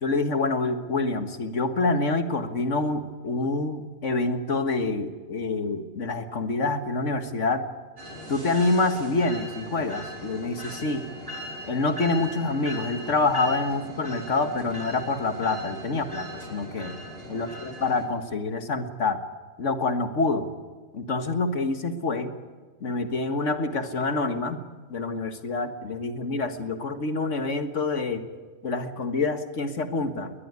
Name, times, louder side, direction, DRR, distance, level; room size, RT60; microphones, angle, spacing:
voice 1, 0.0-7.6 8.3-11.0 11.7-16.9 17.3-19.2 19.6-20.5 20.9-22.3 22.8-24.6 24.9-28.2 28.6-30.3, left 3 dB, 75° left, 8 dB, 1.9 m, -27 dB
sound 1, 8.0-18.0, equal, 50° right, 5.2 m, -39 dB
20.5 x 20.5 x 9.6 m, 1.4 s
omnidirectional pair, 1.3 m